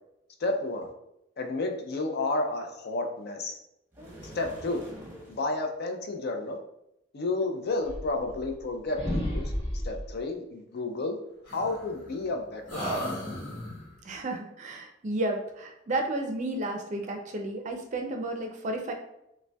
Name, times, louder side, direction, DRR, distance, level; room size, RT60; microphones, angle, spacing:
voice 1, 0.4-0.9 1.4-3.6 4.3-4.8 5.3-6.6 7.1-9.5 9.8-11.2 11.5-13.2, left 2 dB, 55° left, 4 dB, 0.5 m, -31 dB
sound 1, 3.9-5.5, right 1 dB, 10° right, 0.8 m, -45 dB
sound 2, 7.8-8.7 8.9-10.1 11.5-12.3 12.7-13.9, equal, 25° left, 1.2 m, -33 dB
voice 2, 14.0-18.9, right 2 dB, 40° right, 3 dB, 0.4 m, -32 dB
5.1 x 2.1 x 2.2 m, 0.83 s
head